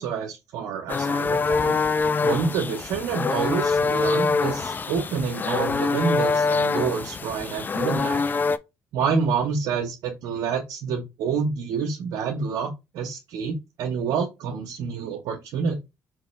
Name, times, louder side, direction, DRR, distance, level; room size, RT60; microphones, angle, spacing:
voice 1, 0.0-1.8 2.2-8.2 8.9-15.8, right 6 dB, 80° right, 0.8 m, -28 dB
sound 1, 0.9-8.6, left 4 dB, 30° left, 0.4 m, -24 dB
4.5 x 3.0 x 3.1 m
cardioid pair, 80°, 6 cm